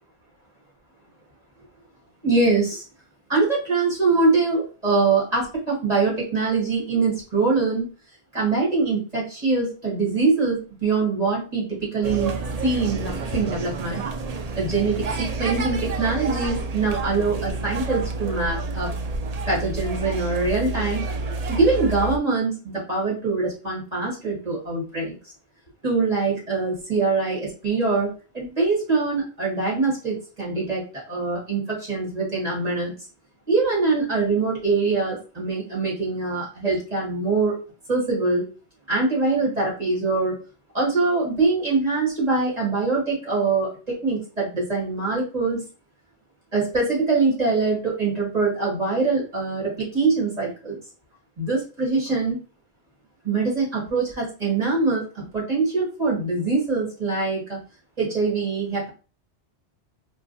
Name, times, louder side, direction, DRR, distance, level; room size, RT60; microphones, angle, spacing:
voice 1, 2.2-2.8 3.3-7.8 8.3-12.3 12.6-14.0 14.5-18.9 19.5-21.1 21.5-25.1 25.8-32.9 33.5-37.6 37.9-38.4 38.9-40.4 40.7-45.6 46.5-50.8 51.4-52.4 53.2-57.6 58.0-58.9, right 3 dB, 35° right, -5 dB, 1.6 m, -23 dB
sound 1, 12.0-22.2, right 3 dB, 60° right, 0.4 m, -29 dB
4.7 x 2.2 x 2.6 m, 0.34 s
omnidirectional pair, 1.2 m